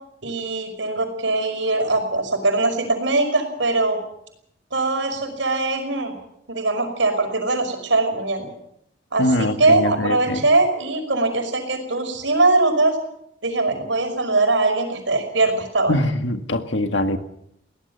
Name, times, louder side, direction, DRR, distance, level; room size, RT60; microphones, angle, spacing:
voice 1, 0.2-4.0 4.7-6.2 6.5-8.5 9.1-13.0 13.4-16.0, right 2 dB, 85° right, 5 dB, 5.6 m, -21 dB
voice 2, 9.2-10.4 15.9-17.2, left 1 dB, 75° left, 7 dB, 1.9 m, -22 dB
22.0 x 18.0 x 7.0 m, 0.75 s
head